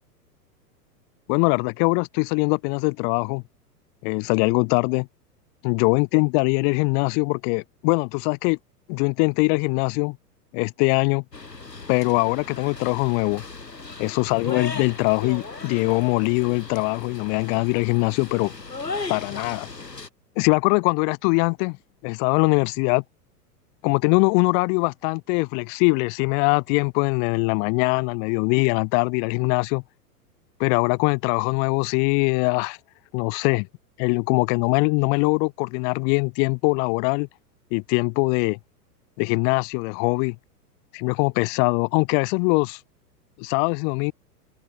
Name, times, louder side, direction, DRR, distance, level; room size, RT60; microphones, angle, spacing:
voice 1, 1.3-3.4 4.0-5.1 5.6-8.6 8.9-10.2 10.5-11.2 11.9-13.4 14.0-18.5 19.1-19.7 20.4-21.8 22.0-23.0 23.8-29.8 30.6-32.8 33.1-33.7 34.0-37.3 37.7-38.6 39.2-40.4 40.9-42.8 43.4-44.1, left 40 dB or more, 20° left, 0.5 m, -22 dB
sound 1, 11.3-20.1, left 3 dB, 90° left, 2.7 m, -37 dB
figure-of-eight pair, 100°, 49 cm